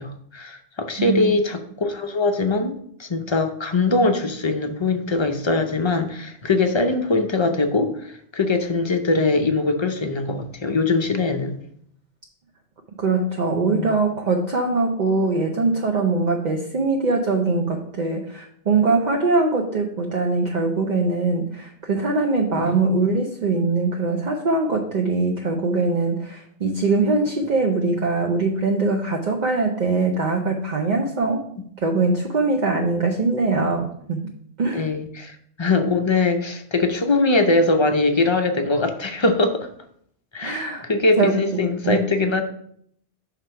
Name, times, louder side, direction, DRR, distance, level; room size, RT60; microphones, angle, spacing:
voice 1, 0.0-2.7 3.0-11.5 13.6-13.9 22.5-22.8 34.7-39.7 40.3-42.4, left 3 dB, 35° left, 6 dB, 0.5 m, -22 dB
voice 2, 1.0-1.3 13.0-31.5 31.8-34.3 34.6-34.9 40.4-40.8 41.2-41.5 41.8-42.0, right 3 dB, 45° right, 1 dB, 0.8 m, -22 dB
6.1 x 3.7 x 5.5 m, 0.67 s
omnidirectional pair, 1.1 m